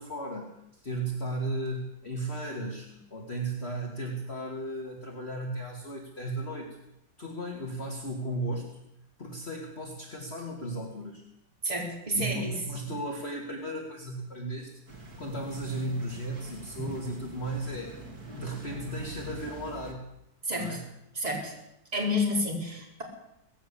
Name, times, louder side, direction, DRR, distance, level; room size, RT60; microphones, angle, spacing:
voice 1, 0.0-6.8 7.2-8.7 9.2-11.2 12.1-18.0 18.3-20.1 20.5-20.9, right 1 dB, 35° left, -1 dB, 2.7 m, -35 dB
voice 2, 11.6-12.6 16.8-16.9 20.4-20.8 21.1-21.5 21.9-23.0, left 1 dB, 20° right, -2 dB, 4.7 m, -30 dB
sound 1, 14.9-19.9, right 2 dB, 55° right, 3.3 m, -45 dB
19.5 x 16.0 x 8.5 m, 0.81 s
omnidirectional pair, 2.0 m